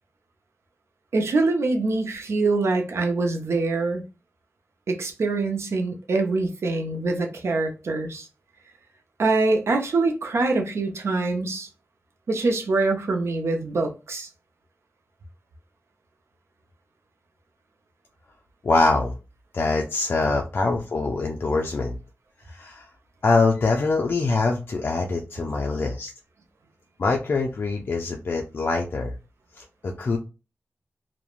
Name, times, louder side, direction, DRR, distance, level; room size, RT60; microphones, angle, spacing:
voice 1, 1.1-4.0 4.9-8.3 9.2-11.7 12.3-14.3, right 3 dB, 75° right, 0.5 m, -24 dB
voice 2, 18.6-19.2 19.5-22.0 22.5-22.8 23.2-26.1 27.0-29.1 29.6-30.2, left 3 dB, 50° left, 0.3 m, -24 dB
3.0 x 2.0 x 2.3 m
wide cardioid pair, 110°, 5 cm